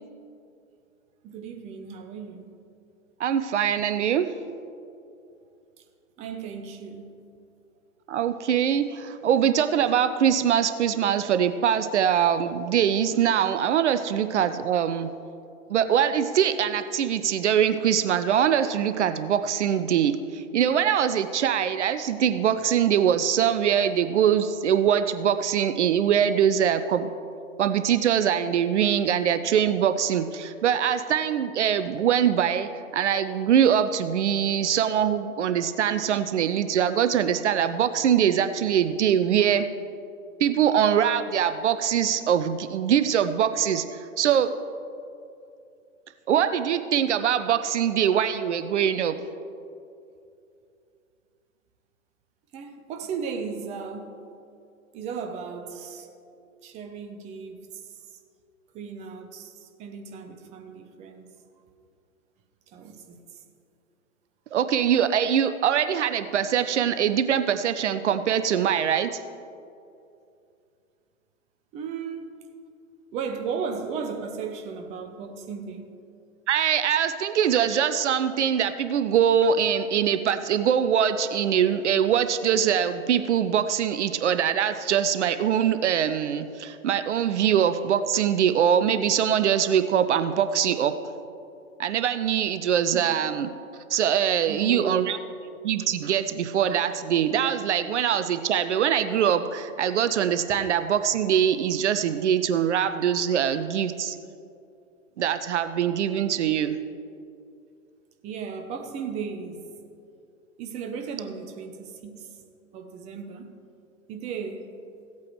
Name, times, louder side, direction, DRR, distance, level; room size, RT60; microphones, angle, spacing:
voice 1, 1.2-2.5 6.2-7.2 52.5-54.2 54.9-56.1 56.6-58.0 58.7-61.3 62.7-63.2 71.7-72.3 73.1-75.9 92.9-93.0 94.4-95.1 108.2-109.6 110.6-112.3 112.7-113.6 114.1-114.7, right 6 dB, 15° right, 5 dB, 0.6 m, -35 dB
voice 2, 3.2-4.3 8.1-15.1 15.7-27.1 27.6-39.6 40.4-44.5 46.3-49.2 64.5-69.2 76.5-90.9 91.8-93.5 93.9-95.2 95.6-104.2 105.2-106.8, right 9 dB, 55° right, 11 dB, 0.6 m, -23 dB
16.5 x 8.3 x 3.1 m, 2.5 s
figure-of-eight pair, 115°, 42 cm